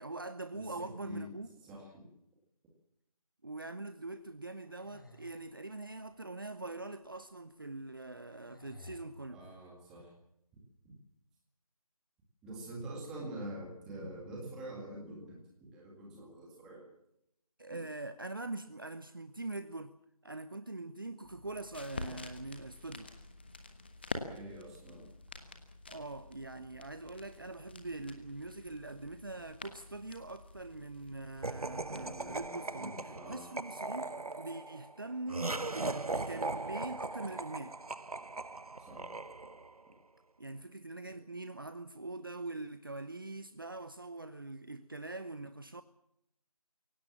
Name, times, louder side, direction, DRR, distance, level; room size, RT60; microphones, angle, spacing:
voice 1, 0.0-1.5 3.4-9.4 17.6-19.9 20.2-23.1 25.9-32.9 33.2-34.1 34.4-37.7 40.4-45.8, right 2 dB, 35° right, 12 dB, 0.8 m, -43 dB
voice 2, 0.5-1.3 1.6-2.0 9.3-10.1 10.8-10.9 12.4-16.9 17.7-17.8 24.2-25.1 31.9-33.4 38.8-39.1 41.1-41.2, right 1 dB, 5° right, -2 dB, 2.0 m, -46 dB
sound 1, 4.4-6.3 7.0-7.1 7.9-9.0, left 2 dB, 35° left, 2.1 m, -56 dB
sound 2, 21.2-32.5, left 3 dB, 15° left, 1.3 m, -47 dB
Laughter, 31.4-39.8, right 3 dB, 70° right, 1.1 m, -39 dB
23.5 x 17.5 x 7.3 m, 0.77 s
figure-of-eight pair, 170°, 20 cm